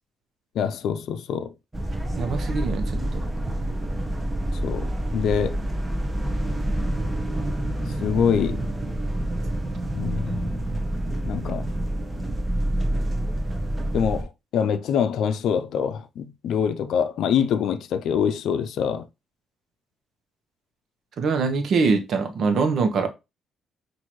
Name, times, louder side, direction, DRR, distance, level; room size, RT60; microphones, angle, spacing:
voice 1, 0.5-1.5 4.5-5.6 8.0-8.6 9.9-10.5 11.2-11.7 13.9-19.1, left 7 dB, 75° left, 0.5 m, -25 dB
sound 1, 1.7-14.2, right 1 dB, 15° right, 1.0 m, -27 dB
voice 2, 2.2-3.3 21.2-23.1, right 4 dB, 60° right, 0.9 m, -23 dB
5.8 x 2.6 x 3.1 m
cardioid pair, 90°, 0 cm